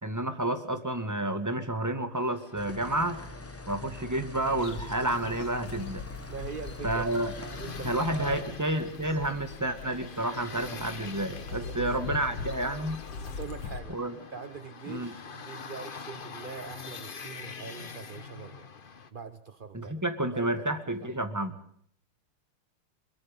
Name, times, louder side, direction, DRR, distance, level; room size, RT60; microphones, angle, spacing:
voice 1, 0.0-3.2 3.7-6.0 6.8-7.3 7.8-13.0 13.9-14.2 14.9-15.1 19.7-21.5, right 1 dB, 10° right, 8 dB, 2.0 m, -30 dB
sound 1, 2.1-19.1, left 5 dB, 35° left, 1.0 m, -45 dB
sound 2, 2.5-8.4, left 2 dB, 15° left, 0.5 m, -43 dB
sound 3, 4.6-13.8, left 5 dB, 70° left, 2.3 m, -42 dB
voice 2, 6.3-8.5 11.5-11.9 13.2-14.0 14.3-18.7 19.1-20.0 20.3-20.7, right 6 dB, 45° right, 11 dB, 0.7 m, -43 dB
23.0 x 22.0 x 5.4 m, 0.63 s
omnidirectional pair, 2.3 m